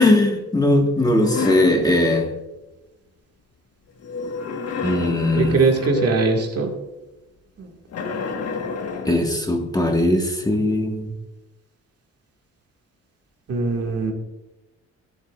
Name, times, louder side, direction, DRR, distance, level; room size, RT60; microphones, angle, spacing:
voice 1, 0.0-2.3 4.8-5.6 9.0-11.1, left 1 dB, 15° left, 2 dB, 1.6 m, -19 dB
sound 1, 1.0-1.8 4.0-6.5 7.9-9.3, left 4 dB, 55° left, 1.4 m, -29 dB
voice 2, 5.4-6.7 7.6-7.7 13.5-14.1, right 4 dB, 50° right, 1 dB, 2.0 m, -21 dB
12.0 x 11.0 x 2.4 m, 1.0 s
cardioid pair, 90°, 30 cm